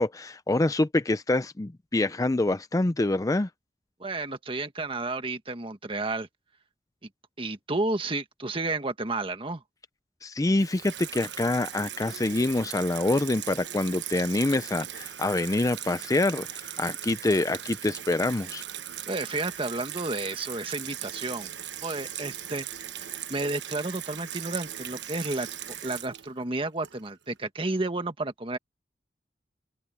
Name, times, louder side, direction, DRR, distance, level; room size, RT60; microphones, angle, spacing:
voice 1, 0.0-3.5 10.2-18.6, left 2 dB, 20° left, 0.5 m, -26 dB
voice 2, 4.0-6.3 7.4-9.6 19.1-21.5 21.8-22.7 23.0-25.5 25.8-28.6, right 2 dB, 30° right, 1.6 m, -31 dB
Water tap faucet / Sink (filling or washing), 10.6-27.3, right 11 dB, 85° right, 1.2 m, -39 dB
open air
head